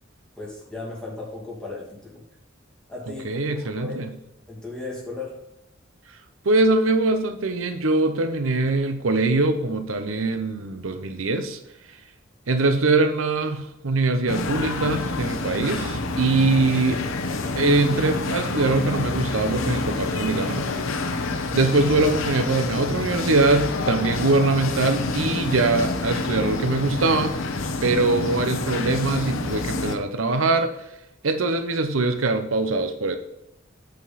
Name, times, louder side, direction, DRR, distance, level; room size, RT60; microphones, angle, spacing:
voice 1, 0.4-2.2 2.9-3.2 3.5-4.0 4.5-5.4, left 3 dB, 5° left, -5 dB, 2.5 m, -36 dB
voice 2, 3.1-4.1 6.4-11.6 12.5-17.0 17.5-20.7 21.5-27.3 27.8-30.7 31.2-33.2, right 3 dB, 90° right, 8 dB, 0.8 m, -22 dB
sound 1, 14.3-30.0, left 3 dB, 90° left, 0.9 m, -28 dB
8.2 x 5.2 x 4.1 m, 0.84 s
head